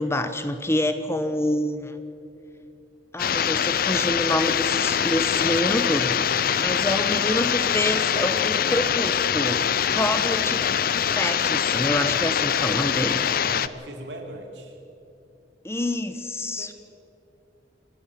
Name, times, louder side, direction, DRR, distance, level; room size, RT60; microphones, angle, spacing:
voice 1, 0.0-2.0 3.1-10.6 11.1-13.2 15.6-16.7, left 1 dB, 15° left, 9 dB, 1.0 m, -27 dB
sound 1, 3.2-13.7, left 8 dB, 55° left, 0.6 m, -23 dB
voice 2, 12.9-14.8 16.6-16.7, right 2 dB, 80° right, 2 dB, 3.4 m, -40 dB
28.5 x 12.5 x 7.6 m, 2.7 s
head